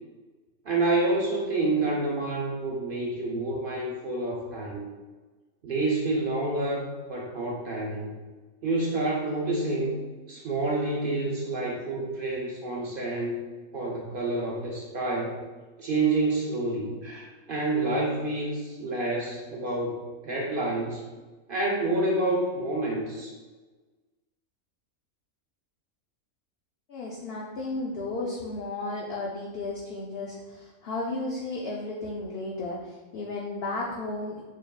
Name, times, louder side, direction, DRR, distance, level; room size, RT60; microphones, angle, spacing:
voice 1, 0.6-4.9 5.6-8.1 8.6-10.0 10.3-13.4 13.7-15.4 15.8-21.0 21.5-23.3, right 2 dB, 55° right, -2 dB, 0.6 m, -28 dB
voice 2, 26.9-34.4, left 2 dB, 60° left, -3 dB, 0.7 m, -34 dB
4.8 x 3.4 x 2.3 m, 1.3 s
omnidirectional pair, 1.4 m